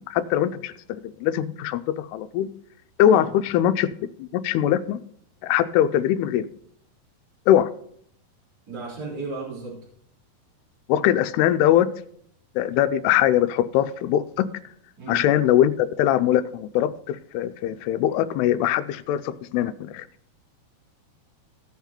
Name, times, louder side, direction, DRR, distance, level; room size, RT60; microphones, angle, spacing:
voice 1, 0.1-2.5 3.0-3.9 4.3-5.0 5.4-6.4 7.5-7.7 10.9-11.9 12.6-14.5 15.1-20.1, left 11 dB, 90° left, 12 dB, 2.6 m, -21 dB
voice 2, 8.7-9.8 15.0-15.2, right 4 dB, 25° right, -6 dB, 3.8 m, -34 dB
16.0 x 5.9 x 4.3 m, 0.66 s
omnidirectional pair, 4.5 m